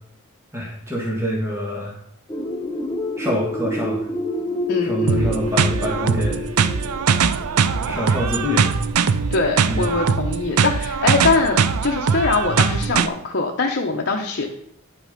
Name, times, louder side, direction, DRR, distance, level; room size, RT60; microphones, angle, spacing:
voice 1, 0.5-2.0 3.2-4.1 4.8-6.5 7.8-8.7 9.7-9.9, left 1 dB, 10° right, -3 dB, 1.8 m, -25 dB
sound 1, 2.3-8.9, left 2 dB, 15° left, 0.6 m, -28 dB
voice 2, 4.7-5.3 9.3-14.5, left 3 dB, 50° left, 0 dB, 0.9 m, -22 dB
sound 2, 5.1-13.1, right 6 dB, 85° right, 0.5 m, -21 dB
9.7 x 6.1 x 5.2 m, 0.76 s
head